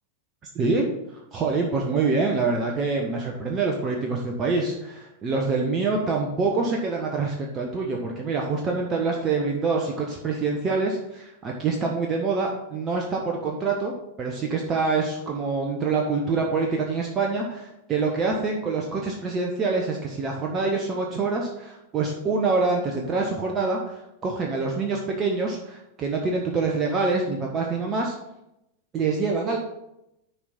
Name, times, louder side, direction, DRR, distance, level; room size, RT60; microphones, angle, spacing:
voice 1, 0.5-13.9 14.2-28.1 28.9-29.6, right 4 dB, 25° right, 0 dB, 1.1 m, -26 dB
10.5 x 4.9 x 4.3 m, 0.85 s
figure-of-eight pair, 90°, 0 cm